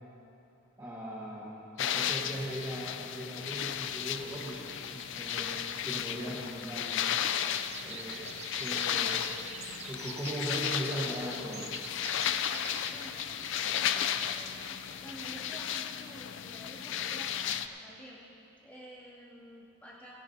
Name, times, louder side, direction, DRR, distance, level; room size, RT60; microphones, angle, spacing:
voice 1, 0.8-4.6 4.9-7.1 7.8-11.7, equal, 15° right, -7 dB, 1.2 m, -39 dB
sound 1, 1.8-17.7, left 9 dB, 55° left, 0.4 m, -34 dB
sound 2, 3.4-15.6, right 7 dB, 30° right, 0.4 m, -48 dB
voice 2, 12.5-13.3 13.6-18.2 18.6-20.1, equal, 5° left, -8 dB, 2.4 m, -50 dB
18.0 x 16.5 x 2.8 m, 2.9 s
head